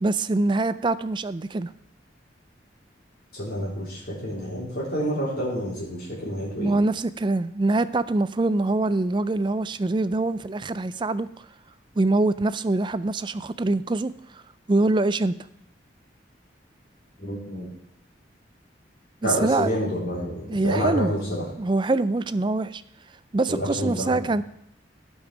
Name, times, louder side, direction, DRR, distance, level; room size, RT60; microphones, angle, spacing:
voice 1, 0.0-1.7 6.6-11.3 12.0-14.1 14.7-15.3 19.2-19.7 20.5-21.1 21.6-22.8 23.3-24.4, right 2 dB, 25° right, 15 dB, 0.4 m, -24 dB
voice 2, 3.3-6.7 17.2-17.7 19.2-21.4 23.5-24.2, equal, 55° left, -6 dB, 3.9 m, -28 dB
16.0 x 5.5 x 5.0 m, 0.74 s
head